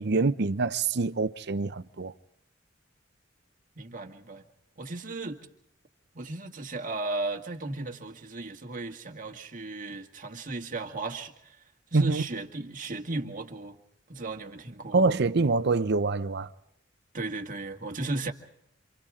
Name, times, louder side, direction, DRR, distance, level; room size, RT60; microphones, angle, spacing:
voice 1, 0.0-2.1 11.9-12.2 14.9-16.5, right 3 dB, 60° right, 0.7 m, -25 dB
voice 2, 3.8-4.4 4.8-5.4 6.1-11.6 11.9-13.8 14.1-15.0 17.1-18.3, right 2 dB, 45° right, 1.9 m, -35 dB
28.0 x 28.0 x 3.7 m
head